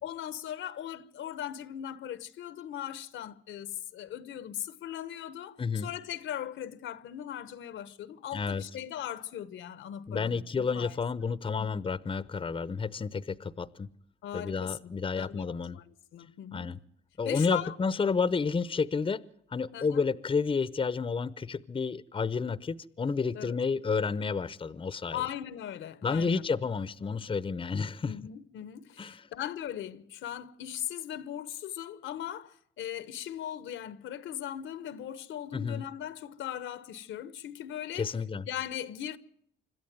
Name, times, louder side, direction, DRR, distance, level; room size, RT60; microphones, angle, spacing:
voice 1, 0.0-10.9 11.6-11.8 14.2-16.7 17.2-17.8 19.7-20.0 23.3-23.6 25.1-26.5 28.0-38.1 38.5-39.2, left 10 dB, 75° left, 1.1 m, -39 dB
voice 2, 5.6-5.9 8.3-8.6 10.1-13.9 14.3-15.8 16.5-16.8 17.2-19.2 19.5-25.2 26.0-28.2 29.0-29.2 35.5-35.8 37.9-38.4, left 5 dB, 25° left, 0.8 m, -30 dB
26.5 x 12.5 x 9.3 m
cardioid pair, 90°, 20 cm